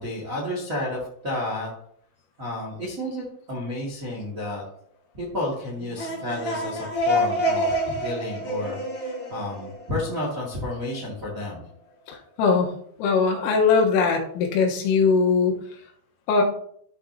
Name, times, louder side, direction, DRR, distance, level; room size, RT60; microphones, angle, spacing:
voice 1, 0.0-1.7 2.4-4.6 5.1-11.7, left 1 dB, 80° right, -5 dB, 0.7 m, -31 dB
sound 1, 5.8-10.5, equal, 40° left, 2.9 m, -27 dB
voice 2, 12.1-12.7 13.0-15.6 16.3-16.4, left 5 dB, 85° left, 1 dB, 3.9 m, -21 dB
13.0 x 6.6 x 2.9 m, 0.64 s
omnidirectional pair, 5.9 m